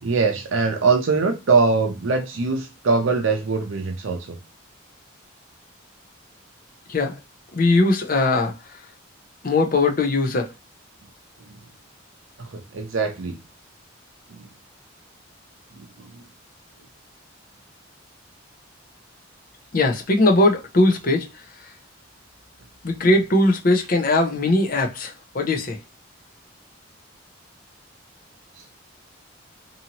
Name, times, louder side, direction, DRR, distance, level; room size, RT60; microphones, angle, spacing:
voice 1, 0.0-4.4 11.5-11.6 12.4-13.4 14.4-14.5 15.7-16.1, right 4 dB, 70° right, 0.6 m, -22 dB
voice 2, 7.5-8.5 9.4-10.5 19.7-21.3 22.8-25.8, left 2 dB, 45° left, 0.6 m, -20 dB
2.7 x 2.7 x 2.8 m
head